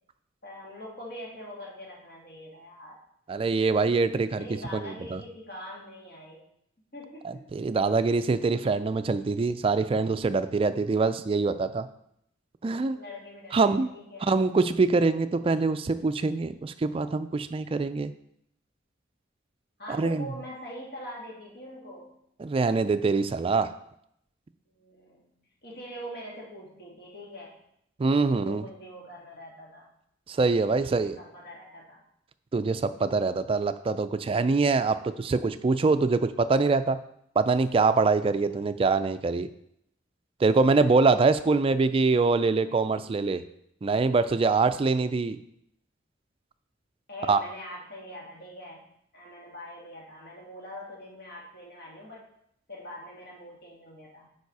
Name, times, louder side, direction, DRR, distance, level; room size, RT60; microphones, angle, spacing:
voice 1, 0.4-3.0 4.4-6.4 6.9-7.5 12.9-13.6 13.9-14.3 19.8-22.1 24.7-25.3 25.6-27.5 28.3-29.9 30.7-32.0 38.5-38.6 40.8-40.9 47.1-48.8 49.1-52.2 52.7-54.3, equal, 55° left, -3 dB, 2.2 m, -43 dB
voice 2, 3.3-5.2 7.2-11.9 12.6-13.0 13.5-13.9 14.3-18.1 19.9-20.3 22.4-23.7 28.0-28.6 30.3-31.2 32.5-37.0 37.4-39.5 40.4-43.4 43.8-45.4 47.3-47.4, right 4 dB, 30° right, 11 dB, 0.3 m, -24 dB
7.0 x 4.8 x 4.7 m, 0.75 s
head